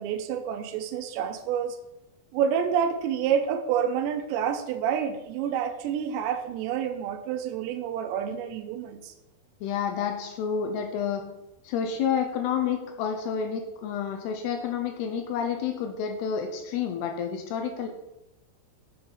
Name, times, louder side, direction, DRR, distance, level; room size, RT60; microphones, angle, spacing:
voice 1, 0.0-1.8 2.3-9.1, right 8 dB, 80° right, 8 dB, 2.8 m, -28 dB
voice 2, 9.6-11.2 11.6-17.9, left 7 dB, 80° left, 4 dB, 2.6 m, -29 dB
8.0 x 5.7 x 5.6 m, 0.91 s
omnidirectional pair, 5.2 m